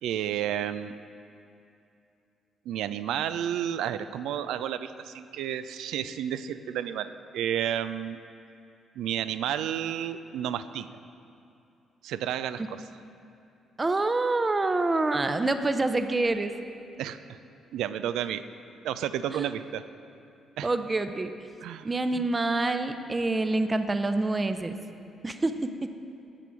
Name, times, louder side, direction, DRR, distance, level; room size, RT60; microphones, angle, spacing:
voice 1, 0.0-1.0 2.7-8.2 9.0-10.9 12.0-12.8 17.0-17.4 17.7-18.5 18.8-19.8 20.6-20.7 21.6-21.9, right 10 dB, 65° right, 12 dB, 0.3 m, -31 dB
voice 2, 13.8-16.5 19.3-19.5 20.6-21.3 21.8-24.8 25.2-25.9, right 2 dB, 25° right, 9 dB, 0.6 m, -26 dB
8.1 x 7.7 x 6.2 m, 2.6 s
figure-of-eight pair, 40°, 0 cm